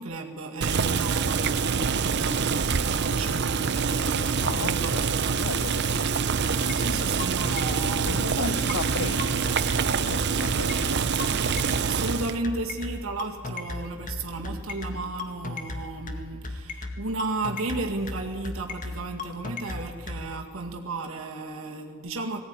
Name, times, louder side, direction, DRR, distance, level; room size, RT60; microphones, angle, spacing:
voice 1, 0.0-4.9 6.7-8.6 9.0-9.1 10.3-11.0 11.8-22.4, right 3 dB, 85° right, 2 dB, 2.0 m, -34 dB
Boiling, 0.6-12.4, right 5 dB, 55° right, 0.7 m, -26 dB
voice 2, 4.4-6.0 8.0-9.5 9.9-10.9, left 5 dB, 85° left, 18 dB, 0.6 m, -36 dB
sound 1, 6.4-20.2, left 3 dB, 40° left, 2.0 m, -34 dB
20.0 x 17.0 x 9.7 m, 2.2 s
head